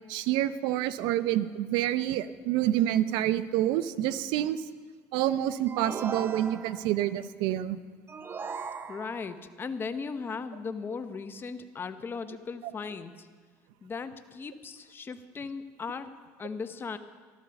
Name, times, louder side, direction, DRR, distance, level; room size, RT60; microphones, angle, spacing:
voice 1, 0.1-4.6 5.1-7.8, right 12 dB, 80° right, 15 dB, 0.7 m, -27 dB
sound 1, 5.7-7.0 8.1-9.4, right 5 dB, 30° right, 0.8 m, -38 dB
voice 2, 8.9-13.1 13.8-16.1 16.4-17.0, left 5 dB, 30° left, 10 dB, 1.0 m, -37 dB
14.0 x 12.5 x 7.0 m, 1.5 s
supercardioid pair, 105°, 8 cm